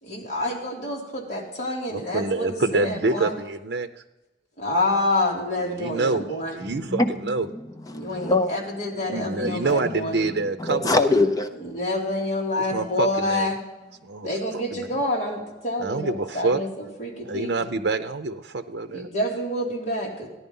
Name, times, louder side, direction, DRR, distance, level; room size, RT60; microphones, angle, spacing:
voice 1, 0.0-3.3 4.6-6.5 7.9-10.2 11.6-13.6 14.2-17.5 18.9-20.3, left 1 dB, 40° left, 3.0 m, -28 dB
voice 2, 1.9-4.0 5.6-6.2 6.5-7.5 9.1-11.0 12.7-13.5 14.0-14.3 14.7-14.9 15.8-16.6 17.2-19.1, right 3 dB, 70° right, 0.6 m, -26 dB
voice 3, 6.6-8.6 8.9-9.6 10.3-11.5, left 2 dB, 20° left, 0.7 m, -25 dB
15.0 x 10.5 x 5.4 m
head